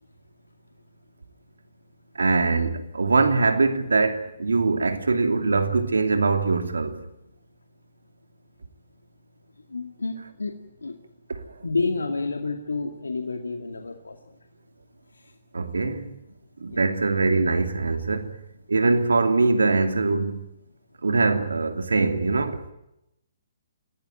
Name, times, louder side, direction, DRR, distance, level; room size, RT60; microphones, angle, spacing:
voice 1, 2.1-7.0 11.3-11.4 15.5-16.1 16.6-18.4 18.7-20.5 21.0-22.6, right 3 dB, 80° right, 2.8 m, -22 dB
voice 2, 9.7-10.5 10.8-11.0 11.6-14.2 16.7-16.8, left 3 dB, 85° left, 2.2 m, -29 dB
25.5 x 17.5 x 9.1 m
figure-of-eight pair, 135°, 0 cm